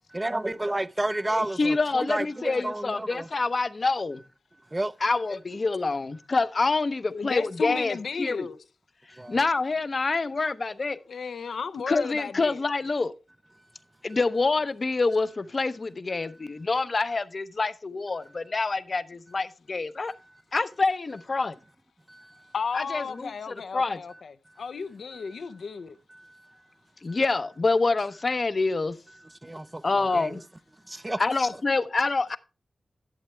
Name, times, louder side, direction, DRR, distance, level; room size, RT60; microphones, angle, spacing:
voice 1, 0.1-3.3 4.7-4.9 9.1-9.4 22.1-22.4 25.1-25.3 26.1-26.5 27.1-27.2 29.4-30.4 30.9-31.2, right 1 dB, 20° right, 0.5 m, -31 dB
voice 2, 1.3-4.2 5.0-8.5 9.3-11.0 11.9-13.1 14.0-20.1 20.5-21.5 22.7-24.0 27.0-29.0 29.8-30.4 31.2-32.4, left 3 dB, 45° left, 0.7 m, -26 dB
voice 3, 7.1-8.6 11.1-12.6 22.5-25.9, left 5 dB, 80° left, 0.7 m, -34 dB
11.5 x 7.9 x 3.2 m
wide cardioid pair, 95°, 0 cm